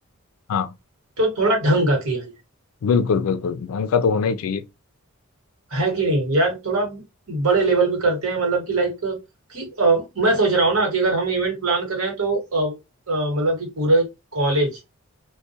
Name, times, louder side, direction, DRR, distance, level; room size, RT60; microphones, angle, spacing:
voice 1, 1.2-2.2 5.7-7.0 7.3-9.2 9.5-12.7 13.1-14.1 14.3-14.8, right 2 dB, 80° right, 1.2 m, -21 dB
voice 2, 2.8-4.6, left 6 dB, 75° left, 0.4 m, -21 dB
2.2 x 2.1 x 2.6 m
head